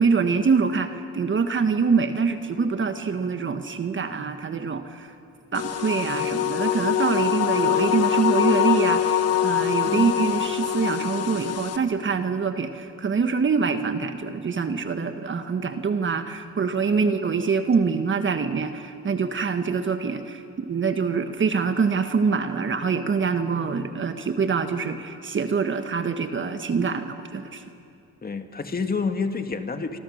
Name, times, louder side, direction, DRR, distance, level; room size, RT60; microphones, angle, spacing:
voice 1, 0.0-5.1 5.5-27.6, right 5 dB, 40° right, 8 dB, 1.5 m, -25 dB
sound 1, 5.5-11.8, left 9 dB, 55° left, 1.4 m, -23 dB
voice 2, 9.8-10.1 16.8-17.1 28.2-30.0, left 4 dB, 30° left, 7 dB, 1.9 m, -29 dB
27.0 x 25.5 x 6.5 m, 2.5 s
cardioid pair, 90°, 30 cm